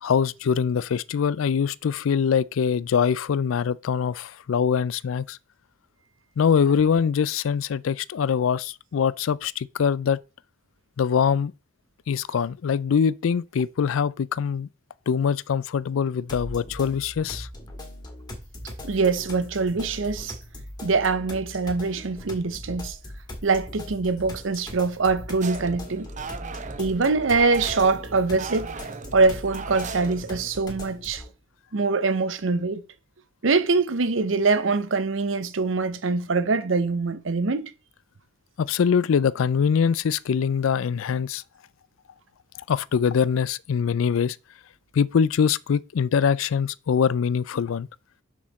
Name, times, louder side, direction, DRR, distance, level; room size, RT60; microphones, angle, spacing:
voice 1, 0.0-5.4 6.4-10.2 11.0-11.5 12.1-14.7 15.1-17.5 38.6-41.4 42.7-44.4 44.9-47.9, left 7 dB, 80° left, 0.4 m, -23 dB
sound 1, 16.3-31.3, left 1 dB, 20° left, 1.8 m, -40 dB
voice 2, 18.8-20.4 20.8-23.0 23.4-26.1 26.8-28.7 29.1-31.2 31.7-32.8 33.4-37.7, right 4 dB, 70° right, 0.8 m, -23 dB
sound 2, 25.4-30.6, right 5 dB, 40° right, 0.6 m, -37 dB
6.4 x 6.1 x 4.1 m
head